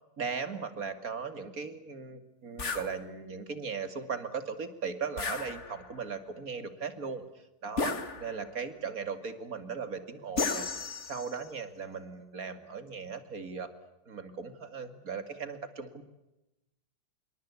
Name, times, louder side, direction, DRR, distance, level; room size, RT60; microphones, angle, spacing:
voice 1, 0.2-7.2 7.6-10.6 11.1-13.7 14.1-16.0, right 5 dB, 45° right, 10 dB, 2.7 m, -38 dB
sound 1, 2.6-2.9 5.2-6.0 7.8-8.6 10.4-11.5, left 4 dB, 40° left, 1.8 m, -34 dB
27.5 x 23.5 x 8.3 m, 0.96 s
omnidirectional pair, 2.1 m